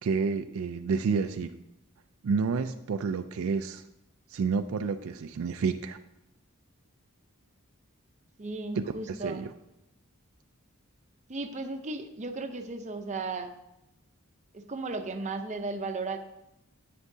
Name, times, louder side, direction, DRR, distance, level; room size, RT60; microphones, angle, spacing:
voice 1, 0.0-1.5 2.2-3.8 4.3-6.0 8.7-9.5, right 5 dB, 70° right, 9 dB, 0.4 m, -29 dB
voice 2, 8.4-9.5 11.3-13.5 14.5-16.2, right 3 dB, 35° right, 6 dB, 0.6 m, -35 dB
9.6 x 8.5 x 2.7 m, 0.88 s
head